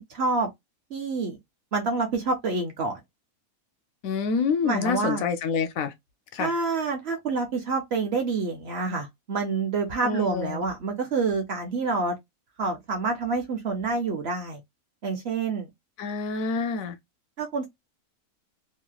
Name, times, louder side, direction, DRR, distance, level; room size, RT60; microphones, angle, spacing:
voice 1, 0.1-0.5 0.9-1.4 1.7-3.0 4.6-5.2 6.4-12.2 12.6-14.6 15.0-15.7 17.4-17.7, right 4 dB, 55° right, 0.8 m, -27 dB
voice 2, 4.0-5.9 6.3-6.5 10.0-10.6 16.0-17.0, left 5 dB, 70° left, 1.0 m, -27 dB
3.0 x 2.7 x 2.3 m
omnidirectional pair, 1.6 m